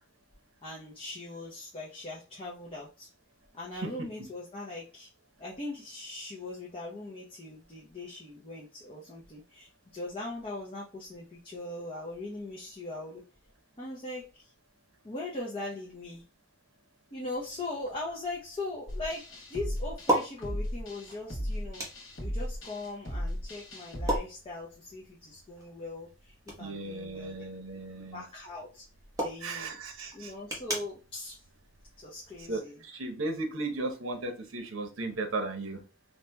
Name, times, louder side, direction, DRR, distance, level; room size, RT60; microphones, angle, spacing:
voice 1, 0.6-3.1 3.5-5.1 5.4-13.2 13.8-14.5 15.0-16.2 17.1-21.8 22.2-27.4 28.1-28.9 29.2-29.8 30.1-31.4 32.0-32.8, left 2 dB, 25° left, -5 dB, 0.7 m, -40 dB
sound 1, 17.4-32.6, right 1 dB, 20° right, 1.0 m, -39 dB
sound 2, 18.9-24.2, equal, 65° left, 1.1 m, -36 dB
voice 2, 26.6-28.2 29.4-30.3 32.5-35.8, right 2 dB, 75° right, 6 dB, 0.8 m, -36 dB
4.2 x 2.8 x 2.2 m, 0.32 s
head